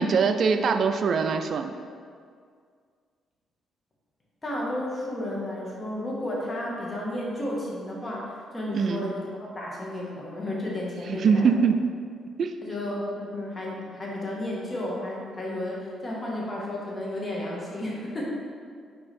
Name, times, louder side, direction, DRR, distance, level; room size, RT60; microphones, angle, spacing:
voice 1, 0.0-1.7 8.7-9.0 11.1-11.9 12.4-12.5, right 5 dB, 55° right, 7 dB, 0.4 m, -23 dB
voice 2, 4.4-11.5 12.6-18.3, left 1 dB, 25° left, -4 dB, 1.6 m, -32 dB
5.3 x 4.5 x 4.2 m, 2.1 s
cardioid pair, 90°, 0 cm